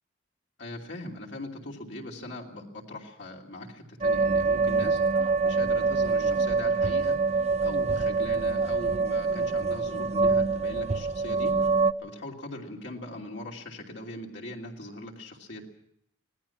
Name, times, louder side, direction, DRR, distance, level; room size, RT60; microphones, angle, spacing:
voice 1, 0.6-7.2 7.6-11.6 12.0-15.7, left 1 dB, 60° left, -1 dB, 2.9 m, -40 dB
sound 1, 4.0-11.9, right 4 dB, 35° right, 0.7 m, -25 dB
25.5 x 18.5 x 5.9 m, 0.73 s
head